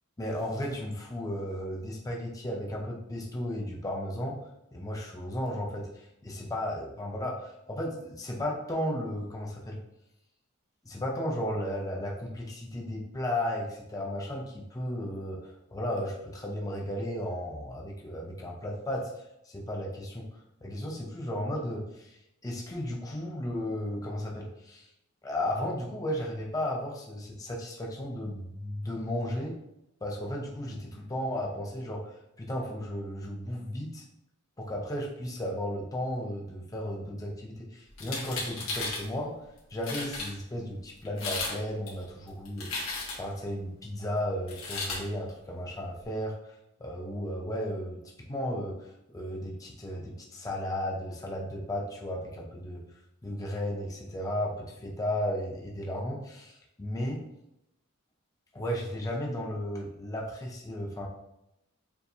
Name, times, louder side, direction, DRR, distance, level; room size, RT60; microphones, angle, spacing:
voice 1, 0.2-4.4 4.7-5.9 6.2-9.8 10.8-19.1 19.4-20.3 20.6-22.2 22.4-24.9 25.2-29.6 30.0-32.1 32.4-34.0 34.6-39.4 39.7-42.9 43.2-48.0 48.3-52.8 53.2-57.2 58.5-61.1, left 1 dB, 15° left, -1 dB, 0.5 m, -34 dB
sound 1, 37.9-39.1 39.6-39.7 39.8-40.3 41.1-41.6 41.9-43.4 44.5-45.0, left 3 dB, 85° left, 1.4 m, -34 dB
6.8 x 2.4 x 2.7 m, 0.85 s
head